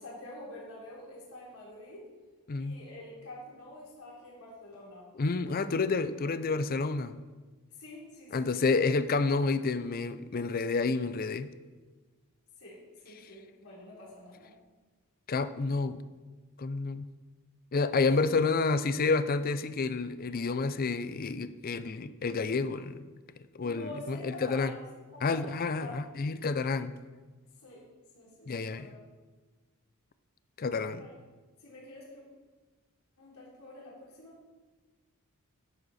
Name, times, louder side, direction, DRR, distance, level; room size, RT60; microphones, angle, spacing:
voice 1, 0.0-2.1 2.6-5.0 7.8-8.6 12.6-14.5 23.6-26.1 27.6-27.8 28.1-29.0 30.9-31.1 31.6-32.2 33.2-34.4, left 1 dB, 75° left, -5 dB, 3.3 m, -47 dB
voice 2, 5.2-7.2 8.3-11.5 15.3-16.0 16.6-17.1 17.7-23.1 23.5-24.7 25.2-27.0 28.5-28.9 30.6-31.1, left 4 dB, 40° left, 13 dB, 0.4 m, -29 dB
11.0 x 7.8 x 4.1 m, 1.3 s
head